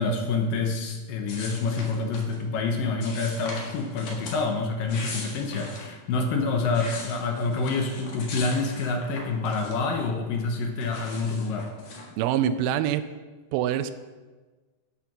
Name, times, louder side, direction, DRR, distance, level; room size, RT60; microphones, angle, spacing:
voice 1, 0.0-11.7, left 3 dB, 70° left, 3 dB, 2.3 m, -27 dB
sound 1, 1.3-2.4 3.0-4.4 4.8-5.9 6.4-10.0 10.3-12.1, left 3 dB, 55° left, 2.4 m, -39 dB
voice 2, 12.2-13.1 13.5-13.9, right 10 dB, 85° right, 11 dB, 2.1 m, -25 dB
12.5 x 5.7 x 5.9 m, 1.3 s
omnidirectional pair, 4.7 m